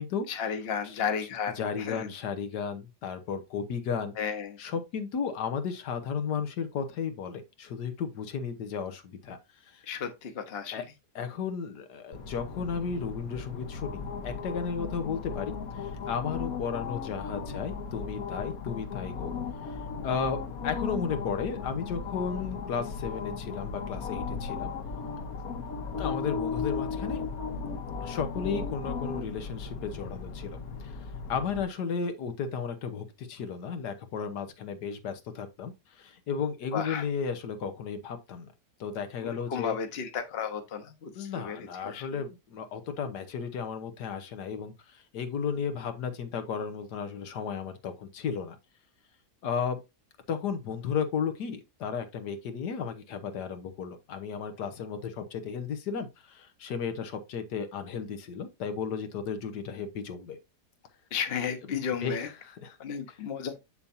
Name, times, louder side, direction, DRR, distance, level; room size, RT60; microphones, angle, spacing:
voice 1, 0.3-2.1 4.2-4.6 9.8-10.9 36.7-37.1 39.2-42.2 61.1-62.3 62.8-63.6, left 7 dB, 45° left, 1.1 m, -33 dB
voice 2, 1.6-4.1 4.6-9.4 9.7-9.8 10.7-10.8 11.1-19.3 19.6-19.8 20.0-20.4 20.6-24.7 26.0-27.3 28.0-30.6 30.8-38.5 38.8-39.7 41.1-48.6 49.4-49.8 50.3-60.4 62.0-62.8, left 6 dB, 85° left, 1.6 m, -34 dB
sound 1, 12.1-31.6, left 5 dB, 65° left, 1.4 m, -36 dB
7.0 x 6.8 x 2.7 m
omnidirectional pair, 1.7 m